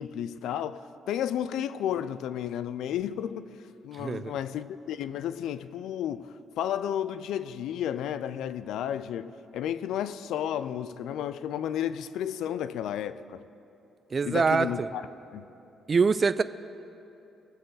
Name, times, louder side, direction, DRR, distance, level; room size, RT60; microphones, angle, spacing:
voice 1, 0.0-3.5 3.8-13.4 14.2-15.0 15.3-15.4, left 10 dB, 85° left, 0.4 m, -32 dB
voice 2, 4.0-4.3 14.1-14.9 15.9-16.4, right 5 dB, 35° right, 0.3 m, -24 dB
20.5 x 7.7 x 4.0 m
cardioid pair, 90°, 0 cm